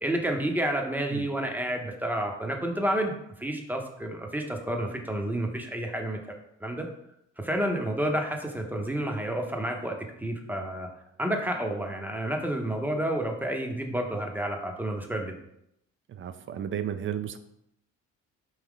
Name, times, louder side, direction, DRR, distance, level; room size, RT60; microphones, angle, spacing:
voice 1, 0.0-6.9 7.4-10.9 11.2-15.3, right 1 dB, 5° right, 3 dB, 0.7 m, -30 dB
voice 2, 16.1-17.4, right 9 dB, 45° right, 11 dB, 0.4 m, -33 dB
4.8 x 2.9 x 3.6 m, 0.79 s
cardioid pair, 90°, 30 cm